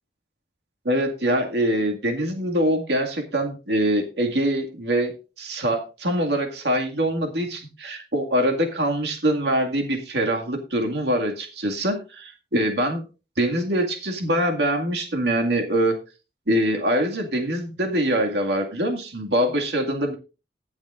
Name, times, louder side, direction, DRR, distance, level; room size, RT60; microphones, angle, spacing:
voice 1, 0.9-13.0 13.4-16.0 16.5-20.2, right 1 dB, 70° right, 3 dB, 2.1 m, -24 dB
20.0 x 7.2 x 2.5 m, 0.30 s
head